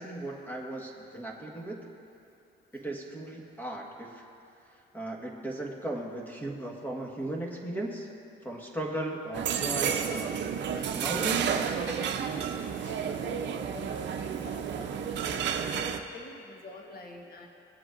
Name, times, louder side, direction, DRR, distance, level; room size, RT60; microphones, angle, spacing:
voice 1, 0.0-1.8 2.7-4.3 4.9-8.1 8.4-10.4 10.9-11.6, right 1 dB, 10° left, 0 dB, 1.5 m, -36 dB
sound 1, 9.3-16.0, right 7 dB, 65° right, 0.7 m, -31 dB
voice 2, 12.8-17.5, left 2 dB, 50° left, 2 dB, 1.3 m, -46 dB
17.5 x 7.8 x 2.6 m, 2.6 s
cardioid pair, 90°, 20 cm